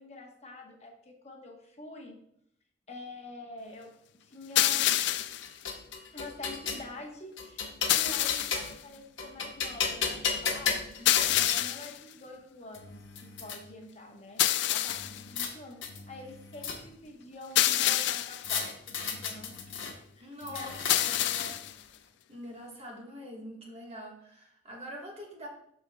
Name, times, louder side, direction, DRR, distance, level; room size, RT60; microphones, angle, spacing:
voice 1, 0.0-2.2 2.9-5.0 6.1-10.8 11.3-21.6, left 2 dB, 35° left, 1 dB, 1.1 m, -47 dB
sound 1, 4.6-5.5 7.9-8.7 11.1-12.0 14.4-15.2 17.6-18.5 20.9-21.7, left 13 dB, 65° left, 0.3 m, -27 dB
sound 2, 5.1-6.9 7.4-8.8 9.2-11.6 12.4-12.5 12.7-13.6 14.9-15.5 15.8-17.1 18.4-19.9 20.4-21.7, left 6 dB, 85° left, 1.1 m, -35 dB
voice 2, 10.7-11.2 20.2-20.7 21.1-21.2 22.3-25.5, equal, 35° right, -1 dB, 1.4 m, -44 dB
12.5 x 4.5 x 2.3 m, 0.72 s
head